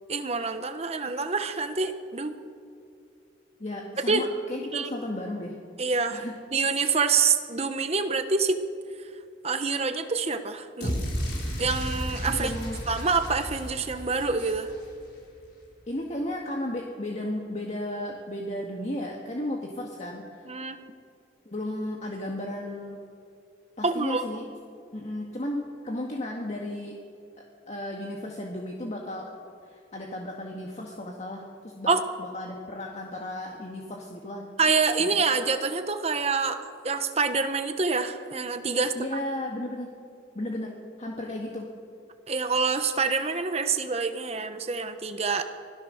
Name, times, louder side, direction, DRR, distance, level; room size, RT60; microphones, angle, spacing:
voice 1, 0.1-2.4 4.1-4.2 4.6-4.9 5.8-6.3 6.5-8.6 9.4-10.9 11.6-12.6 12.9-14.7 20.5-20.8 23.8-24.2 31.9-32.0 34.6-38.9 42.3-45.4, right 4 dB, 35° right, 8 dB, 1.0 m, -26 dB
voice 2, 3.6-5.6 6.1-6.4 12.3-12.8 15.9-20.5 21.5-23.0 23.8-24.4 24.9-27.0 27.4-29.3 29.6-31.9 32.2-34.5 35.0-35.2 39.0-39.9 40.4-41.7, left 1 dB, 40° left, 0 dB, 1.8 m, -34 dB
sound 1, 10.8-15.0, equal, 60° left, 6.0 m, -33 dB
25.0 x 17.0 x 6.5 m, 2.4 s
head